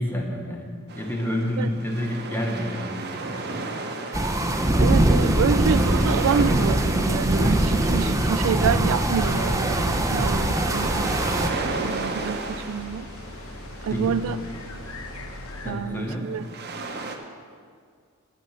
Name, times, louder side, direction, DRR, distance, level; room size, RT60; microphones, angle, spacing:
voice 1, 0.0-3.8 13.9-14.3 15.6-16.4, left 1 dB, 10° left, 1 dB, 1.0 m, -29 dB
sound 1, 0.9-17.2, right 3 dB, 50° right, 0.9 m, -35 dB
sound 2, 4.1-11.5, right 1 dB, 15° right, 0.6 m, -22 dB
voice 2, 4.8-11.2 11.8-13.1 13.8-14.4 15.7-16.5, right 7 dB, 70° right, 14 dB, 0.3 m, -27 dB
sound 3, 9.2-15.7, left 2 dB, 70° left, 1.0 m, -39 dB
9.5 x 6.9 x 6.7 m, 2.1 s
head